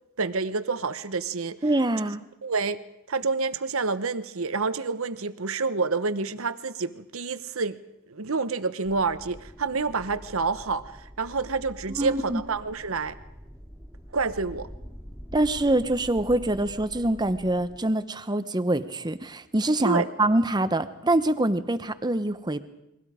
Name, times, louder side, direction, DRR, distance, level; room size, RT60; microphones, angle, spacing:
voice 1, 0.2-1.6 2.4-2.8 3.1-7.8 8.1-13.2 14.1-14.7 19.8-20.1, right 4 dB, 65° right, 13 dB, 1.0 m, -28 dB
voice 2, 1.6-2.2 11.9-12.4 15.3-22.6, right 1 dB, 20° right, 11 dB, 0.9 m, -25 dB
sound 1, 8.8-17.8, equal, 5° left, 2.7 m, -45 dB
29.5 x 22.5 x 5.0 m, 0.88 s
head